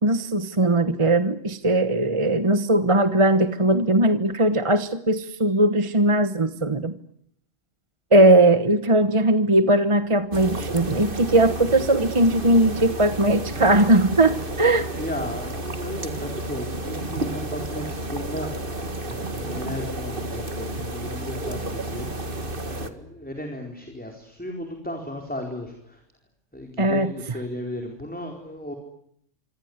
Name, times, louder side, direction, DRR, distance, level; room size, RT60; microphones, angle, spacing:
voice 1, 0.0-6.9 8.1-14.9 26.8-27.1, right 1 dB, 25° right, 11 dB, 1.2 m, -19 dB
sound 1, 10.3-22.9, right 1 dB, 45° right, 2.2 m, -31 dB
voice 2, 15.0-26.0 26.5-28.7, left 1 dB, 5° left, 3 dB, 4.5 m, -35 dB
27.0 x 26.0 x 8.1 m, 0.70 s
omnidirectional pair, 1.3 m